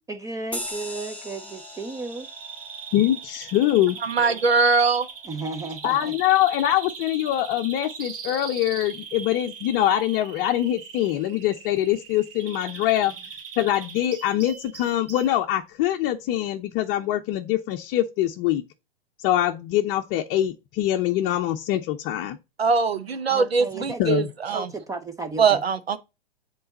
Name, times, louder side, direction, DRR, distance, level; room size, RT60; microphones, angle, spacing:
voice 1, 0.1-2.3 4.5-4.6 5.2-6.1 13.1-13.2 23.3-24.0 24.5-25.6, right 3 dB, 10° right, 0.6 m, -34 dB
sound 1, 0.5-5.4, left 1 dB, 5° left, 1.4 m, -40 dB
Bird vocalization bird call bird song, 1.4-15.4, right 6 dB, 65° right, 1.8 m, -40 dB
voice 2, 2.9-4.0 5.8-13.1 13.6-18.6 19.2-22.4 24.0-24.3, left 13 dB, 35° left, 0.7 m, -23 dB
voice 3, 4.0-5.1 22.6-24.6 25.4-26.0, right 5 dB, 85° right, 1.1 m, -21 dB
7.8 x 3.9 x 4.1 m
hypercardioid pair, 110°, 30 cm